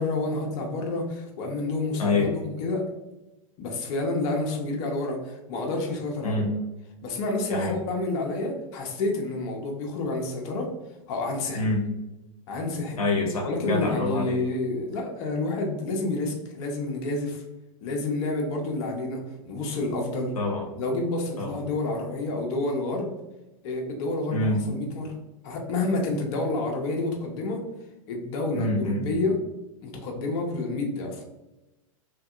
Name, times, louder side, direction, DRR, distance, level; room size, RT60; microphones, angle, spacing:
voice 1, 0.0-2.9 3.6-6.5 7.0-10.7 11.1-11.6 12.5-13.0 13.4-17.4 17.8-20.3 20.8-23.1 23.6-25.1 25.4-27.6 28.1-29.4 29.8-31.3, left 2 dB, 55° left, 1 dB, 0.8 m, -29 dB
voice 2, 13.0-14.4 20.3-20.7 21.4-21.6 24.3-24.6 28.5-29.2, left 2 dB, 90° left, -1 dB, 0.7 m, -26 dB
2.9 x 2.6 x 2.4 m, 1.0 s
hypercardioid pair, 105°, 18 cm